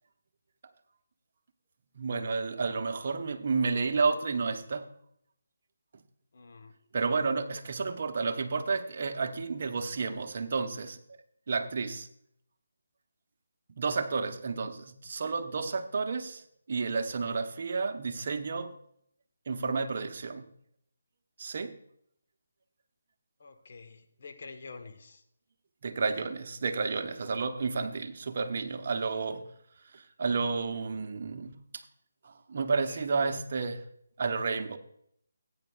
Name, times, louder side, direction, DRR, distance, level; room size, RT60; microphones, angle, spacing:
voice 1, 2.0-4.9 6.9-11.0 11.5-12.1 13.8-16.4 16.7-18.7 19.5-20.5 21.4-21.8 25.8-29.5 29.9-31.6 32.2-33.9 34.2-34.8, right 4 dB, 50° right, 0.9 m, -31 dB
voice 2, 6.3-6.7 7.5-7.6 23.4-25.2 32.9-33.4, left 4 dB, 55° left, 1.3 m, -47 dB
15.5 x 8.7 x 2.4 m
figure-of-eight pair, 155°, 0 cm